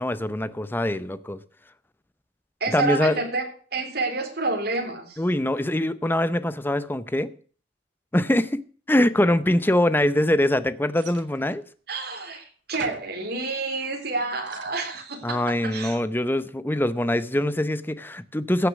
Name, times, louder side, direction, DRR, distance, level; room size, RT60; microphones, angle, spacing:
voice 1, 0.0-1.4 2.7-3.2 5.2-7.3 8.1-8.6 8.9-11.6 15.2-18.7, left 1 dB, 10° left, 0.6 m, -23 dB
voice 2, 2.6-5.2 11.9-16.0, right 3 dB, 60° right, 3.7 m, -29 dB
sound 1, 10.9-11.7 12.4-12.5 12.7-13.2 13.9-15.1, right 5 dB, 90° right, 1.5 m, -44 dB
15.5 x 6.7 x 6.2 m
head